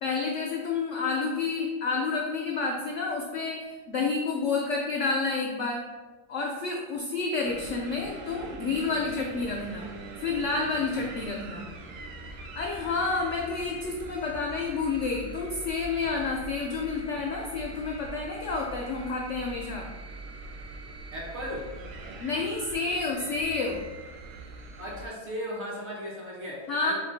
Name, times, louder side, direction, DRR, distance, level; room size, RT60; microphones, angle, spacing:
voice 1, 0.0-5.8 6.3-9.9 10.2-11.7 12.6-19.8 22.2-23.8 26.7-26.9, left 4 dB, 70° left, 0 dB, 0.7 m, -29 dB
sound 1, 7.4-25.1, right 2 dB, 75° right, 1.1 m, -42 dB
voice 2, 21.1-21.6 24.8-26.9, equal, 45° right, -5 dB, 1.2 m, -36 dB
3.7 x 3.5 x 3.9 m, 1.3 s
omnidirectional pair, 1.8 m